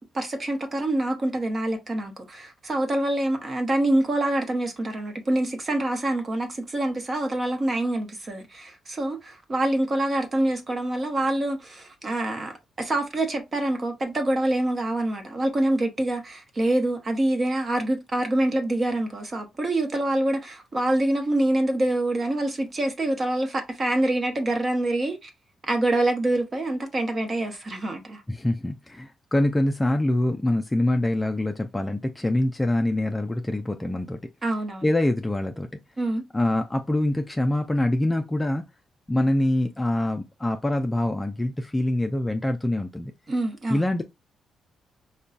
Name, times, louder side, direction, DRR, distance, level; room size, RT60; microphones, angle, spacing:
voice 1, 0.1-25.3 25.7-28.2 34.4-34.8 36.0-36.2 43.3-43.8, right 1 dB, 25° right, 0.8 m, -26 dB
voice 2, 28.3-34.2 34.8-35.7 36.3-38.6 39.1-43.1 43.7-44.0, left 1 dB, 10° left, 0.3 m, -24 dB
5.2 x 2.2 x 2.4 m
cardioid pair, 165°, 0 cm